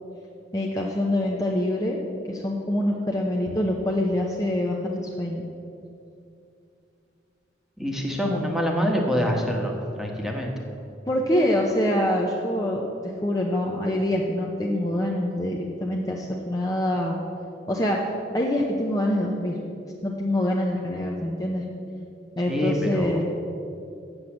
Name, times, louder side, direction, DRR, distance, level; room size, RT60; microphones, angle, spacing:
voice 1, 0.5-2.0 2.3-5.4 11.1-12.8 13.2-17.2 17.7-18.0 18.3-19.6 20.0-21.6 22.4-23.3, left 1 dB, 20° left, -1 dB, 0.8 m, -25 dB
voice 2, 7.8-10.5 22.5-23.1, equal, ahead, 0 dB, 1.3 m, -25 dB
8.0 x 7.5 x 8.6 m, 2.6 s
head